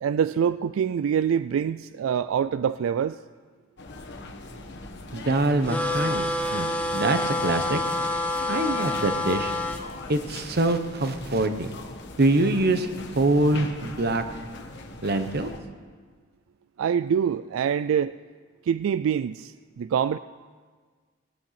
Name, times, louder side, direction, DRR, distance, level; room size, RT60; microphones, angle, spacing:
voice 1, 0.0-3.2 16.8-18.1 18.7-20.2, right 8 dB, 90° right, 14 dB, 0.3 m, -25 dB
sound 1, 3.8-15.6, left 2 dB, 60° left, 1.4 m, -40 dB
voice 2, 5.1-7.8 8.5-9.5 10.1-11.7 12.2-12.9 13.1-14.2 15.0-15.5, right 2 dB, 55° right, 8 dB, 1.0 m, -24 dB
sound 2, 5.7-9.8, left 2 dB, 5° left, 1.0 m, -27 dB
19.5 x 8.8 x 5.9 m, 1.6 s
head